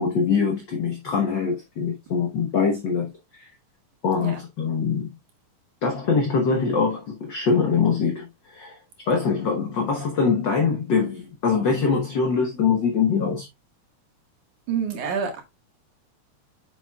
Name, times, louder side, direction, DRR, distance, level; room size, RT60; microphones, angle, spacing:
voice 1, 0.0-3.1 3.4-3.5 4.0-5.1 5.8-8.8 9.1-13.5, left 5 dB, 60° left, 1.2 m, -23 dB
voice 2, 14.7-15.4, right 6 dB, 75° right, 3.2 m, -27 dB
7.3 x 6.9 x 2.3 m
omnidirectional pair, 3.6 m